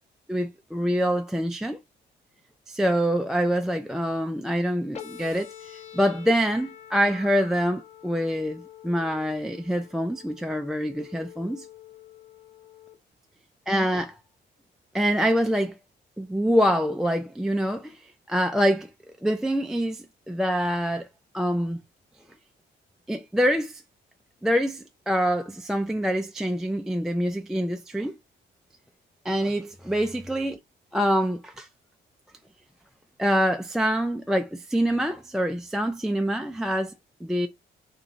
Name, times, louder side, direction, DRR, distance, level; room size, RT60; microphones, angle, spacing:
voice 1, 0.3-1.8 2.7-11.7 13.7-14.1 14.9-15.8 16.2-18.9 19.2-21.1 21.3-21.8 23.1-23.8 24.4-28.2 29.2-30.6 30.9-31.7 33.2-36.9 37.2-37.5, equal, ahead, 0.3 m, -25 dB
sound 1, 4.9-13.0, left 10 dB, 35° left, 0.8 m, -46 dB
2.9 x 2.5 x 2.7 m
cardioid pair, 90°, 20 cm